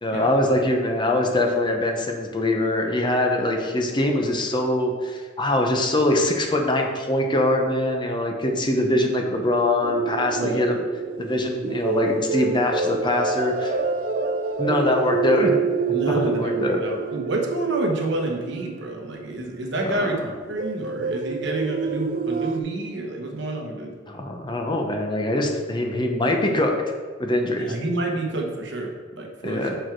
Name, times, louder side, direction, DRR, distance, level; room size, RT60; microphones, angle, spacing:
voice 1, 0.0-10.8 11.2-13.8 14.6-15.6 16.0-16.8 19.9-20.3 24.1-26.7 27.2-27.7 29.4-29.8, left 1 dB, 25° left, 3 dB, 0.8 m, -23 dB
sound 1, 9.8-19.4 20.5-22.6, right 5 dB, 50° right, 0.5 m, -27 dB
voice 2, 15.9-20.2 20.5-23.9 27.6-29.7, right 2 dB, 70° right, 2 dB, 1.1 m, -28 dB
6.4 x 4.7 x 4.6 m, 1.5 s
head